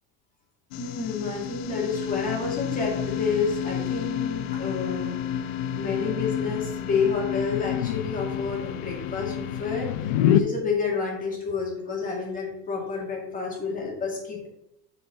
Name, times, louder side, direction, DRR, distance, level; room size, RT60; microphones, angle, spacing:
sound 1, 0.7-10.4, left 10 dB, 60° left, 0.5 m, -29 dB
voice 1, 0.8-14.5, left 5 dB, 20° left, -2 dB, 2.0 m, -29 dB
6.7 x 5.1 x 3.7 m, 0.84 s
supercardioid pair, 145°, 43 cm